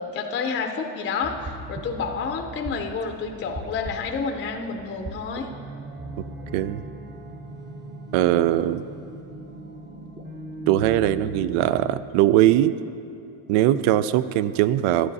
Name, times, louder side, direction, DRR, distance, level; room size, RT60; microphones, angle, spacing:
voice 1, 0.0-5.5, left 5 dB, 25° left, 4 dB, 0.6 m, -29 dB
sound 1, 1.2-12.0, right 1 dB, 20° right, 0.8 m, -38 dB
voice 2, 8.1-8.8 10.7-12.7 13.5-15.1, right 13 dB, 75° right, 15 dB, 0.6 m, -20 dB
11.5 x 9.8 x 4.0 m, 2.7 s
cardioid pair, 130°, 49 cm